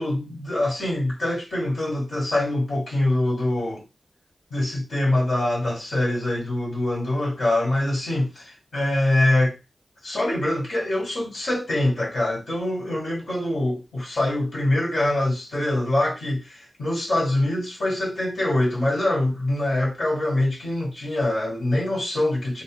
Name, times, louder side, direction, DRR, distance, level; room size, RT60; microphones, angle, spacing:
voice 1, 0.0-3.8 4.5-9.6 10.0-22.6, left 1 dB, 85° left, 1.9 m, -24 dB
4.1 x 2.3 x 2.2 m
wide cardioid pair, 65°, 0 cm